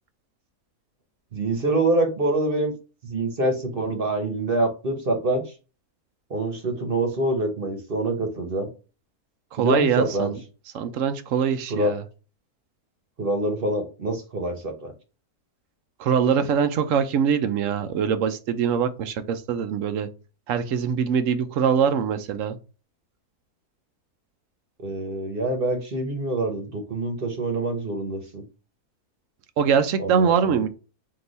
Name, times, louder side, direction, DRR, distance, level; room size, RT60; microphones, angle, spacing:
voice 1, 1.3-2.7 3.0-5.5 6.3-8.7 9.6-10.3 11.7-12.0 13.2-14.9 24.8-28.4 30.0-30.6, right 2 dB, 40° right, 1.1 m, -25 dB
voice 2, 9.5-10.4 10.7-12.0 16.0-20.1 20.5-22.6 29.6-30.7, right 7 dB, 65° right, 0.9 m, -23 dB
3.8 x 2.9 x 3.9 m
omnidirectional pair, 1.7 m